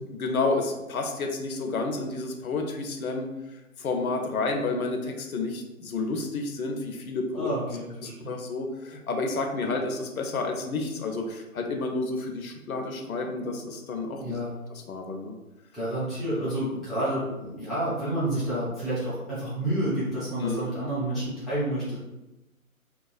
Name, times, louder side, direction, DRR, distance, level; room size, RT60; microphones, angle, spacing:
voice 1, 0.1-3.3 3.8-7.5 8.0-14.2 14.9-15.4 20.4-20.7, left 3 dB, 70° left, 3 dB, 0.6 m, -30 dB
voice 2, 7.3-8.3 14.2-14.5 15.7-22.0, right 1 dB, ahead, -11 dB, 0.3 m, -29 dB
2.3 x 2.2 x 2.4 m, 1.0 s
figure-of-eight pair, 140°, 44 cm